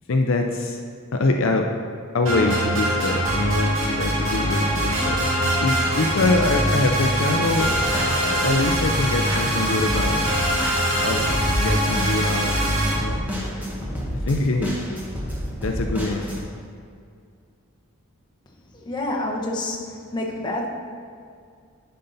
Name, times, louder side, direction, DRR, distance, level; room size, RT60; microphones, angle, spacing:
voice 1, 0.1-0.8 1.1-1.7 2.1-5.2 5.6-7.7 8.2-10.4 11.0-11.3 11.6-13.2 14.3-14.8 15.6-16.5, left 2 dB, 60° left, 3 dB, 0.5 m, -24 dB
sound 1, 2.2-12.9, equal, 65° right, 2.1 m, -22 dB
sound 2, 7.6-16.4, equal, 10° right, 1.3 m, -31 dB
voice 2, 18.7-19.8 20.1-20.7, left 1 dB, 20° left, -2 dB, 1.0 m, -27 dB
10.5 x 5.6 x 4.0 m, 2.2 s
head